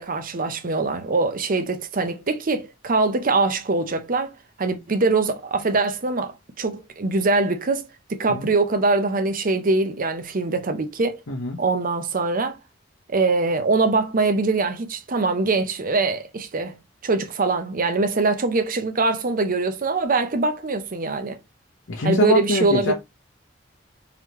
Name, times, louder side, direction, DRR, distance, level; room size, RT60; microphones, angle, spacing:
voice 1, 0.0-4.3 4.6-11.2 11.6-12.6 13.1-16.8 17.0-21.4 22.0-22.9, right 3 dB, 45° right, 0.7 m, -23 dB
voice 2, 11.3-11.6 21.9-22.9, left 3 dB, 80° left, 0.8 m, -23 dB
4.0 x 3.1 x 3.0 m
head